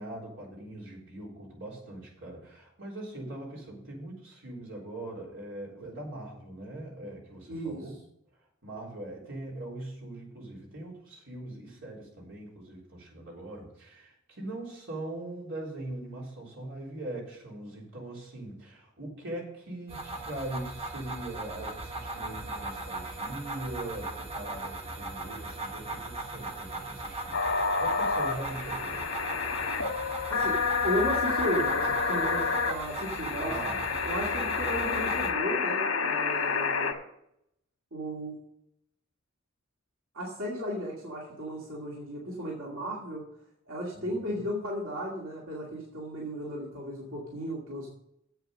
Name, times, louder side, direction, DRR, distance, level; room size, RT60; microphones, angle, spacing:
voice 1, 0.0-8.0 8.6-27.4 27.8-29.1 33.4-33.8 43.9-44.4, right 1 dB, 65° right, -3 dB, 3.8 m, -41 dB
voice 2, 7.5-7.8 30.3-33.5 34.0-36.9 37.9-38.4 40.1-43.2 43.7-47.9, equal, 90° right, -4 dB, 2.3 m, -35 dB
sound 1, 19.9-35.3, right 2 dB, 30° right, 1.2 m, -38 dB
sound 2, 27.3-36.9, left 5 dB, 85° left, 1.5 m, -29 dB
8.0 x 7.9 x 6.3 m, 0.75 s
head